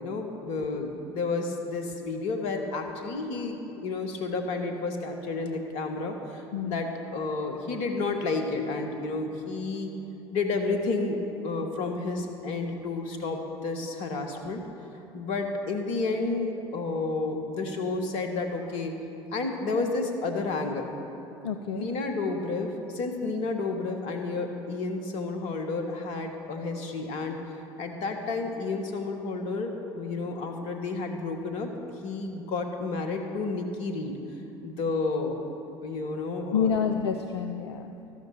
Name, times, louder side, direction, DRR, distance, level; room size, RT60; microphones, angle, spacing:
voice 1, 0.0-9.9 10.3-11.2 11.4-14.6 14.9-19.0 19.3-20.9 21.7-31.7 32.0-34.1 34.6-35.4 35.8-36.8, left 3 dB, 55° left, 4 dB, 1.5 m, -31 dB
voice 2, 21.4-21.9 36.5-37.9, left 7 dB, 80° left, 6 dB, 0.5 m, -28 dB
13.0 x 12.5 x 4.4 m, 2.9 s
figure-of-eight pair, 65°, 13 cm